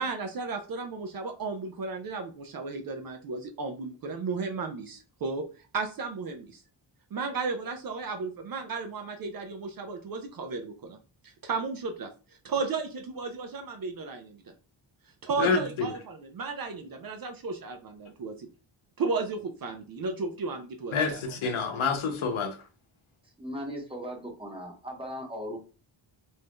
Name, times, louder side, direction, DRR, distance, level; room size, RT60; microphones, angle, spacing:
voice 1, 0.0-5.4 5.7-6.6 7.1-11.0 11.4-12.1 12.4-14.4 15.2-18.5 19.0-21.2, right 4 dB, 50° right, 0.4 m, -34 dB
voice 2, 15.4-15.9 20.9-22.6, left 5 dB, 75° left, 0.8 m, -28 dB
voice 3, 23.4-25.6, equal, 10° right, 0.8 m, -38 dB
2.6 x 2.2 x 3.4 m
wide cardioid pair, 115°, 49 cm